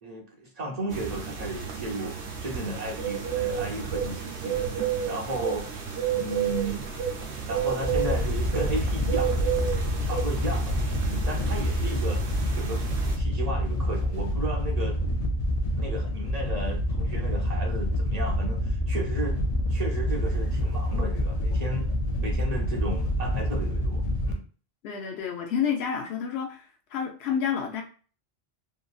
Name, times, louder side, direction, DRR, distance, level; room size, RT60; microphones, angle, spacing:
voice 1, 0.0-4.6 5.1-5.8 6.1-6.9 7.4-9.3 9.6-12.2 12.5-12.8 13.1-15.0 15.8-19.4 19.7-21.9 22.2-24.4, right 1 dB, 45° right, 0.7 m, -34 dB
sound 1, 0.9-13.2, right 8 dB, 85° right, 1.0 m, -31 dB
Wind / Boat Water vehicle, 7.8-24.3, equal, 55° left, 0.4 m, -27 dB
voice 2, 24.8-26.6 26.9-27.8, left 7 dB, 75° left, 0.8 m, -29 dB
2.9 x 2.5 x 2.3 m
omnidirectional pair, 1.1 m